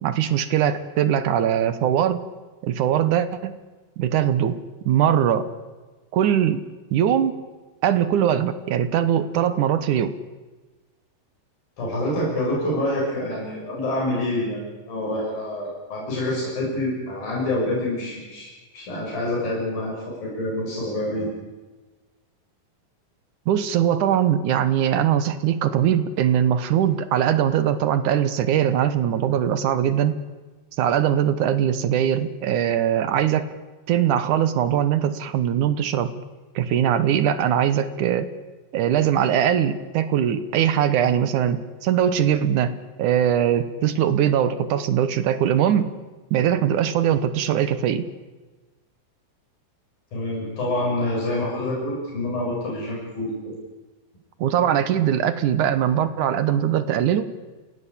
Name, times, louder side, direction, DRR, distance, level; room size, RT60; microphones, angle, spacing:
voice 1, 0.0-2.2 2.6-3.5 4.0-4.6 4.9-5.5 6.1-6.6 6.9-7.4 7.8-10.1 23.5-30.2 30.8-33.5 33.9-36.2 36.6-38.3 38.7-42.7 43.0-45.9 46.3-48.0 54.4-57.3, right 9 dB, 70° right, 13 dB, 2.5 m, -21 dB
voice 2, 11.8-21.3 50.1-53.4, left 1 dB, 80° left, -4 dB, 8.5 m, -27 dB
26.5 x 17.5 x 8.6 m, 1.2 s
omnidirectional pair, 4.1 m